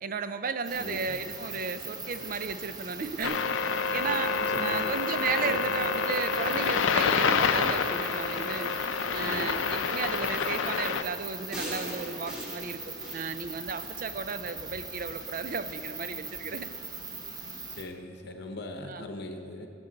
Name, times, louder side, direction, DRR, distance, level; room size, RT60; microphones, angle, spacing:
voice 1, 0.0-3.4 3.9-8.7 9.1-12.8 13.1-16.7 18.8-19.0, right 5 dB, 45° right, 10 dB, 0.5 m, -34 dB
sound 1, 0.6-17.8, right 3 dB, 20° right, 0.9 m, -41 dB
voice 2, 0.8-1.2 4.4-5.0 5.4-5.7 9.2-9.5 17.8-19.7, left 2 dB, 55° left, 5 dB, 0.8 m, -39 dB
sound 2, 3.2-11.0, left 5 dB, 80° left, 0.5 m, -28 dB
sound 3, 11.5-14.0 14.5-14.6, equal, 5° right, 2.1 m, -40 dB
17.5 x 7.0 x 4.0 m, 2.9 s
head